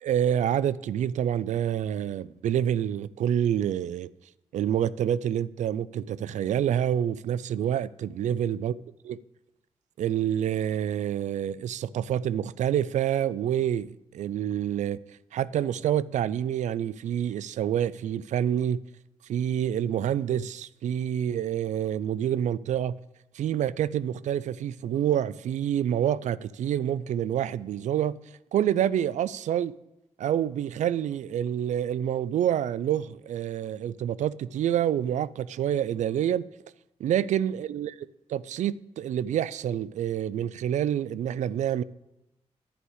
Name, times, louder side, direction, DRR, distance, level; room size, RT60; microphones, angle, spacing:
voice 1, 0.0-4.1 4.5-8.7 9.0-9.2 10.0-15.0 15.3-18.8 19.3-23.0 23.3-28.2 28.5-29.7 30.2-36.4 37.0-41.8, right 10 dB, 80° right, 0.4 m, -27 dB
10.0 x 4.8 x 8.1 m
cardioid pair, 85°, 12 cm